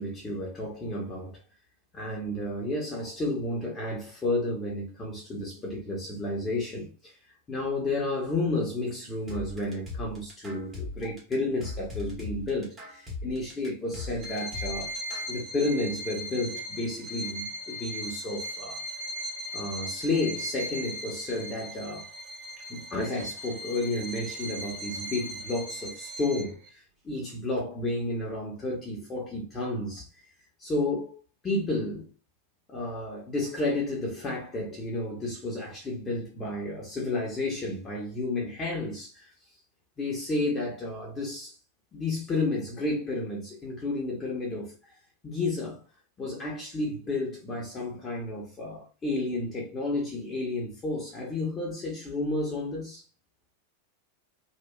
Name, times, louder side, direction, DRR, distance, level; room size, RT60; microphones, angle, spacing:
voice 1, 0.0-1.4 1.9-7.2 7.5-14.9 15.3-18.8 19.5-22.1 22.6-30.1 30.6-31.2 31.4-32.1 32.7-39.3 40.0-41.6 41.9-45.0 45.2-45.8 46.2-53.0, left 2 dB, 20° left, 0.8 m, -31 dB
sound 1, 9.3-15.3, left 3 dB, 20° right, 1.1 m, -39 dB
Bowed string instrument, 14.2-26.7, equal, 50° right, 0.9 m, -38 dB
2.9 x 2.3 x 2.3 m
figure-of-eight pair, 90°, 0 cm